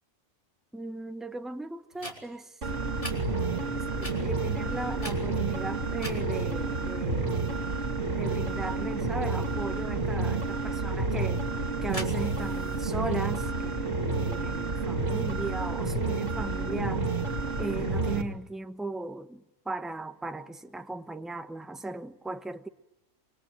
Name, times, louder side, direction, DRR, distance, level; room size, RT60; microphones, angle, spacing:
voice 1, 0.7-2.5 4.0-7.5 8.1-11.4 11.8-17.1 17.6-22.7, right 2 dB, ahead, 1.0 m, -37 dB
sound 1, 1.9-2.1 3.0-3.2 4.0-4.2 5.0-5.5 6.0-6.2 11.9-12.9, left 1 dB, 25° left, 4.3 m, -39 dB
sound 2, 2.6-18.2, right 3 dB, 65° right, 2.7 m, -30 dB
28.0 x 23.0 x 9.1 m
omnidirectional pair, 1.4 m